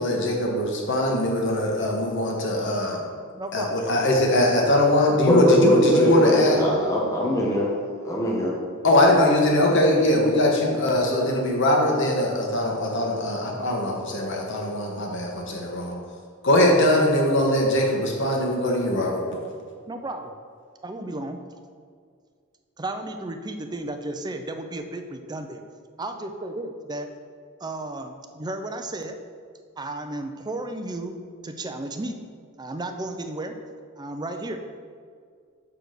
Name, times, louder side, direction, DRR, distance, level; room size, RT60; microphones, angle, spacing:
voice 1, 0.0-3.0 3.5-6.6 8.8-15.9 16.4-19.2, left 1 dB, 60° left, 0 dB, 1.4 m, -21 dB
voice 2, 3.4-3.8 19.9-20.4 20.8-21.4 22.8-25.6 26.0-27.1 27.6-29.2 29.8-31.1 31.4-32.2 32.6-33.5 34.0-34.6, right 2 dB, 20° right, 6 dB, 0.5 m, -33 dB
voice 3, 5.3-7.7 8.0-8.5, left 1 dB, 15° left, -3 dB, 0.8 m, -21 dB
6.0 x 4.9 x 6.6 m, 2.1 s
head